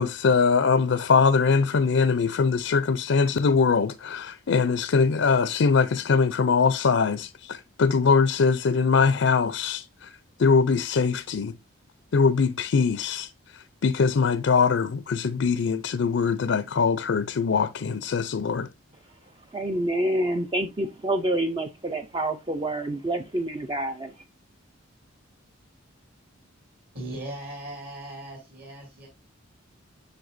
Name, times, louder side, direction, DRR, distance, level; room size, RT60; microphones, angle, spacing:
voice 1, 0.0-11.5 12.1-18.7, left 5 dB, 60° left, 0.4 m, -22 dB
voice 2, 19.5-24.2, right 1 dB, 20° right, 0.4 m, -27 dB
voice 3, 26.9-29.1, right 1 dB, 45° right, 2.5 m, -38 dB
7.8 x 6.5 x 2.5 m
head